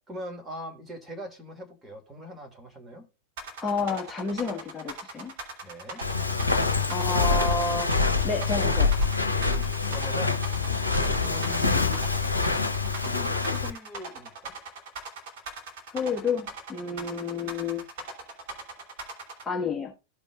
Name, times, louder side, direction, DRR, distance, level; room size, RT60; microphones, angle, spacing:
voice 1, 0.1-3.0 5.6-6.0 9.9-10.4 11.0-12.1 13.0-14.5, equal, 10° right, 2.5 m, -41 dB
sound 1, 3.4-19.4, right 3 dB, 50° right, 3.3 m, -39 dB
voice 2, 3.6-5.3 6.9-7.9 8.2-9.0 15.9-17.8 19.4-19.9, left 4 dB, 10° left, 1.5 m, -30 dB
Walk footsteps, 6.0-13.7, left 4 dB, 80° left, 0.8 m, -25 dB
15.5 x 5.2 x 2.5 m
figure-of-eight pair, 90°, 0 cm